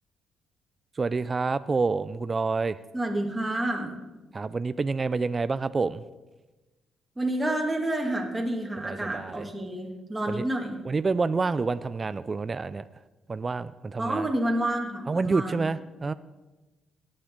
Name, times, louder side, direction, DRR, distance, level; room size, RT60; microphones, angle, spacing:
voice 1, 1.0-2.8 4.3-6.0 8.8-9.5 10.3-10.5 10.8-12.8 13.3-14.3 15.1-16.1, right 4 dB, 30° right, 14 dB, 0.3 m, -28 dB
voice 2, 2.9-3.9 7.2-10.8 14.0-15.7, right 1 dB, 15° right, 0 dB, 2.0 m, -29 dB
17.5 x 8.7 x 3.7 m, 1.1 s
cardioid pair, 90°, 0 cm